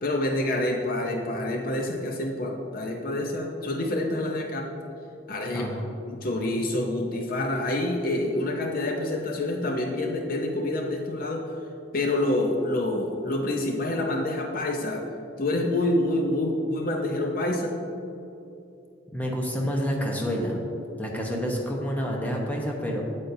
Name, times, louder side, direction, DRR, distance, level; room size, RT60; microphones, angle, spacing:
voice 1, 0.0-4.7 5.3-5.7 6.1-11.4 11.9-15.1 15.4-17.8, left 1 dB, 45° left, 1 dB, 0.6 m, -27 dB
voice 2, 5.5-5.9 19.1-20.6 21.0-23.0, equal, 10° left, -1 dB, 0.9 m, -28 dB
8.6 x 8.2 x 2.7 m, 2.7 s
head